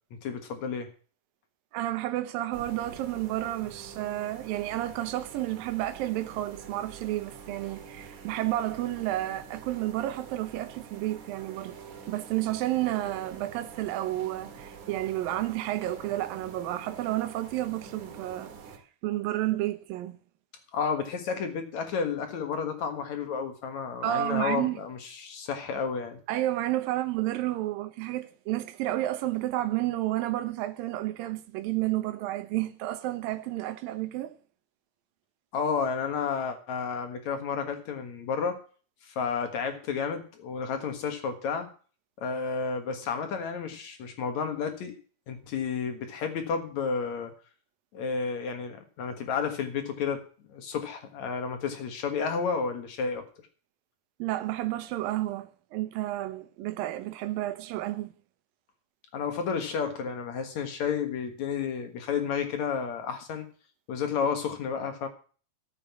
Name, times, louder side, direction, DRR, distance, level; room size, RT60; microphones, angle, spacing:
voice 1, 0.1-0.9 20.7-26.2 35.5-38.6 39.0-41.7 42.2-45.0 45.3-47.3 47.9-53.3 59.1-63.5 63.9-65.1, left 6 dB, 60° left, 2.5 m, -31 dB
voice 2, 1.7-11.8 12.1-18.5 19.0-20.2 24.0-24.8 26.3-34.4 54.2-58.1, right 15 dB, 80° right, 2.7 m, -31 dB
sound 1, 2.5-18.8, right 6 dB, 60° right, 2.9 m, -47 dB
13.5 x 7.4 x 7.1 m
omnidirectional pair, 4.2 m